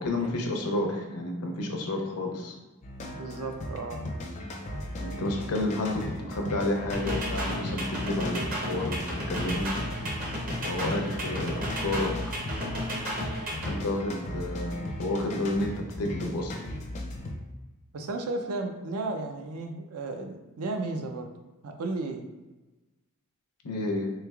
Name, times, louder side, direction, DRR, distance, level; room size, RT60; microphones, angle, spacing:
voice 1, 0.0-2.6 5.0-9.7 10.6-12.2 13.7-16.6 23.6-24.1, left 2 dB, 80° left, 2 dB, 0.6 m, -30 dB
sound 1, 2.8-17.4, left 1 dB, 30° left, 0.4 m, -37 dB
voice 2, 3.1-4.1 17.9-21.3 21.6-22.2, right 2 dB, 75° right, 4 dB, 0.4 m, -34 dB
sound 2, 6.9-13.8, equal, 40° right, 0.7 m, -33 dB
3.4 x 3.2 x 2.3 m, 1.1 s
head